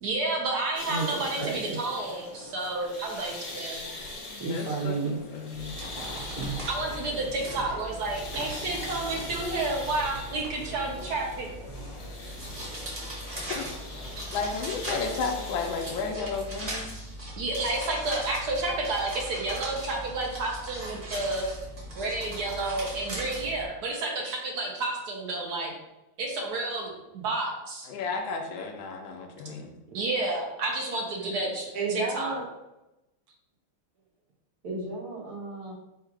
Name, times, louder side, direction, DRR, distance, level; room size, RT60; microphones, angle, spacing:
voice 1, 0.0-3.9 6.7-11.5 14.2-14.3 17.4-21.5 22.0-25.7 26.2-27.9 29.9-32.4, right 2 dB, 65° right, 0 dB, 1.0 m, -30 dB
sound 1, 0.7-16.1, left 2 dB, 50° left, 1.2 m, -42 dB
voice 2, 0.9-1.8 4.4-5.2 31.7-32.4 34.6-35.7, right 3 dB, 90° right, -3 dB, 2.1 m, -32 dB
voice 3, 4.4-6.2 13.5-13.7 14.3-16.9 27.9-29.7, left 4 dB, 70° left, 2 dB, 1.3 m, -33 dB
sound 2, 5.5-23.6, right 1 dB, 30° right, 1.0 m, -39 dB
4.4 x 2.4 x 4.7 m, 0.96 s
omnidirectional pair, 2.4 m